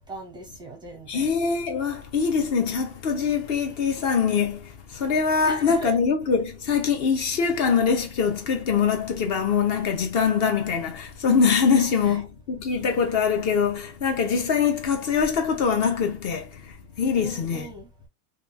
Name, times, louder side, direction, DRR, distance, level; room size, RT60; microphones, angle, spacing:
voice 1, 0.1-1.3 5.4-5.9 11.7-12.2 17.1-17.9, right 2 dB, 10° right, 0.5 m, -39 dB
voice 2, 1.1-16.6 17.0-17.7, left 6 dB, 35° left, 0.6 m, -23 dB
2.9 x 2.3 x 2.3 m
hypercardioid pair, 120°, 44 cm